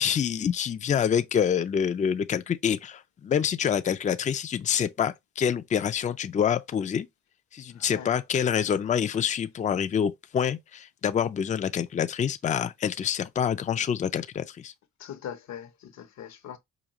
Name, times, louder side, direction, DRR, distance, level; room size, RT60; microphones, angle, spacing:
voice 1, 0.0-7.1 7.5-14.7, left 8 dB, 25° left, 0.4 m, -26 dB
voice 2, 7.8-8.1 15.0-16.6, left 9 dB, 65° left, 0.9 m, -41 dB
5.0 x 2.4 x 2.9 m
cardioid pair, 90°, 30 cm